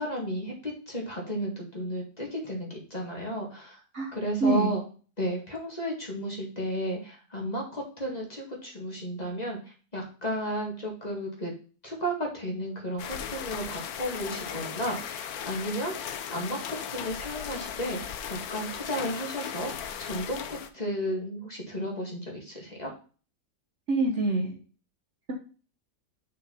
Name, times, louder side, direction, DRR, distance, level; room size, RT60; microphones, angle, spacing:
voice 1, 0.0-3.8 4.1-4.8 5.2-9.6 9.9-11.5 11.8-18.0 18.3-19.7 20.0-22.9, equal, 25° left, -1 dB, 2.0 m, -33 dB
voice 2, 4.4-4.7 23.9-24.5, right 2 dB, 50° right, 1 dB, 1.2 m, -25 dB
sound 1, 13.0-20.7, left 8 dB, 65° left, 1.2 m, -37 dB
6.4 x 4.5 x 5.4 m, 0.38 s
omnidirectional pair, 1.8 m